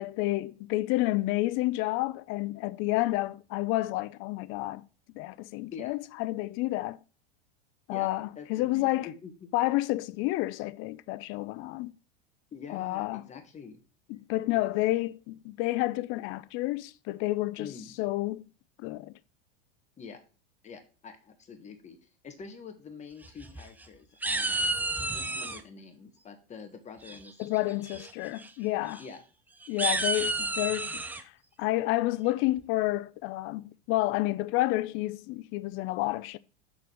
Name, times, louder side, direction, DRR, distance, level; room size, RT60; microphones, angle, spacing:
voice 1, 0.0-4.9 5.1-7.0 7.9-9.1 9.5-11.9 12.7-13.3 14.1-18.4 18.8-19.1 27.4-29.0 29.7-31.3 31.6-36.4, left 18 dB, 45° left, 0.5 m, -30 dB
voice 2, 7.9-9.3 12.5-13.8 14.5-14.6 17.6-18.0 20.0-20.2 20.6-22.0 22.2-24.7 25.1-27.7 29.0-29.2 29.8-29.9, left 6 dB, 25° left, 1.5 m, -46 dB
sound 1, 23.2-23.9 24.2-25.6 27.0-27.4 27.9-28.1 28.4-28.5 28.9-29.0 29.6-31.2, right 2 dB, 5° right, 0.5 m, -31 dB
6.8 x 4.0 x 6.2 m
supercardioid pair, 125°, 29 cm